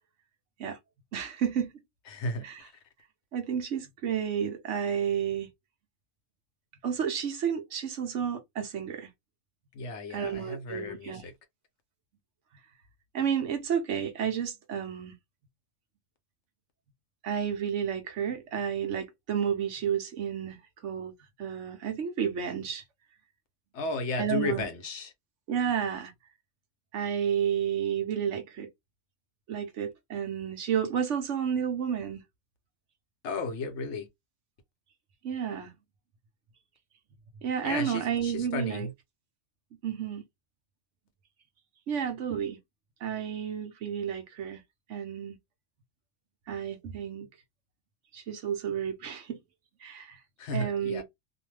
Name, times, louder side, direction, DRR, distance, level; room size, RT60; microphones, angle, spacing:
voice 1, 1.1-1.7 2.4-2.7 3.3-5.5 6.8-9.1 10.1-11.2 13.1-15.1 17.2-20.6 20.8-21.1 21.4-22.8 24.2-24.7 25.5-26.1 26.9-28.7 29.5-32.2 35.2-35.7 37.4-38.9 39.8-40.2 41.9-42.6 43.0-44.6 44.9-45.4 46.5-47.3 48.1-49.4 49.8-50.2 50.5-51.0, right 8 dB, 75° right, 1.0 m, -31 dB
voice 2, 2.1-2.7 9.7-11.3 23.7-25.1 33.2-34.1 37.6-38.9 50.4-51.0, left 2 dB, 65° left, 1.0 m, -34 dB
2.7 x 2.2 x 3.1 m
omnidirectional pair, 1.3 m